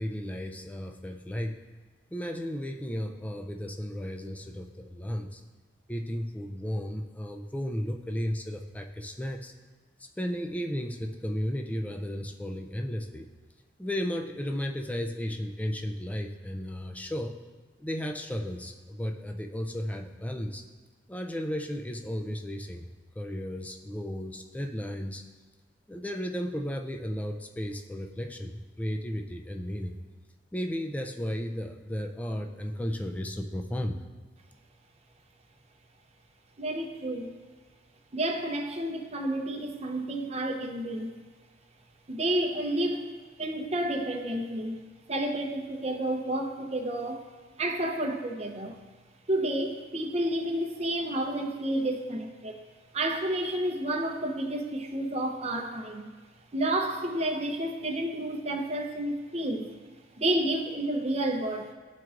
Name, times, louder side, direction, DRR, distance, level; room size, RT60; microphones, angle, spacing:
voice 1, 0.0-1.6 2.1-5.4 5.9-9.5 10.0-13.3 13.8-17.4 17.8-20.6 21.1-22.9 23.2-25.2 25.9-30.0 30.5-34.0, equal, 10° left, 4 dB, 0.4 m, -34 dB
voice 2, 36.6-37.3 38.1-41.1 42.1-43.1 43.4-44.8 45.1-47.2 47.6-48.8 49.3-52.6 52.9-56.1 56.5-59.7 60.2-61.7, right 1 dB, 35° right, 2 dB, 0.7 m, -30 dB
12.0 x 4.5 x 2.5 m, 1.3 s
head